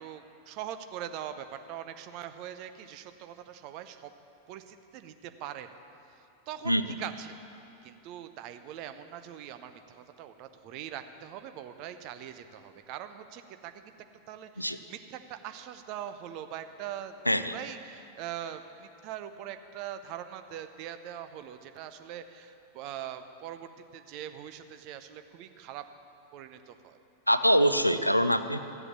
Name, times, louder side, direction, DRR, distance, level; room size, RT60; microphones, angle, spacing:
voice 1, 0.0-4.1 4.5-5.8 6.5-7.4 7.8-13.8 14.3-17.2 17.5-25.8 26.3-27.0, right 10 dB, 45° right, 9 dB, 0.7 m, -42 dB
voice 2, 17.3-17.6 27.3-28.6, equal, 90° left, 11 dB, 0.5 m, -24 dB
14.0 x 8.0 x 7.3 m, 2.8 s
figure-of-eight pair, 90°, 0 cm